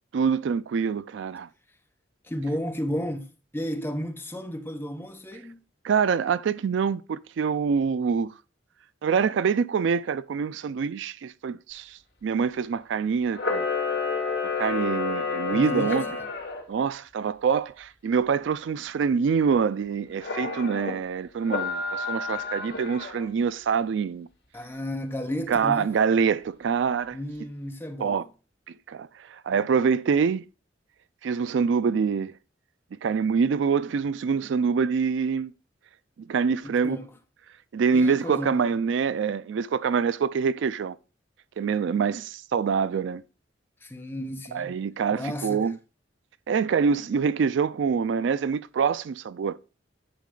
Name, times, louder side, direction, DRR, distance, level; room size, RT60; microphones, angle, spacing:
voice 1, 0.1-1.5 5.8-8.3 9.0-13.6 14.6-16.0 16.7-24.3 25.5-27.2 28.0-28.2 28.9-30.4 31.2-32.3 33.0-35.5 36.3-37.0 37.7-41.0 41.6-43.2 44.5-45.7 46.5-49.6, right 6 dB, 65° right, 0.3 m, -25 dB
voice 2, 2.2-5.6 15.5-16.2 24.5-25.9 27.1-28.3 29.5-29.6 36.6-37.1 37.9-38.7 43.8-44.8 45.1-45.8, equal, 10° left, 0.8 m, -33 dB
Camera, 13.3-16.6 20.2-20.9 21.4-23.3, left 4 dB, 60° left, 2.6 m, -29 dB
10.5 x 4.6 x 3.8 m
head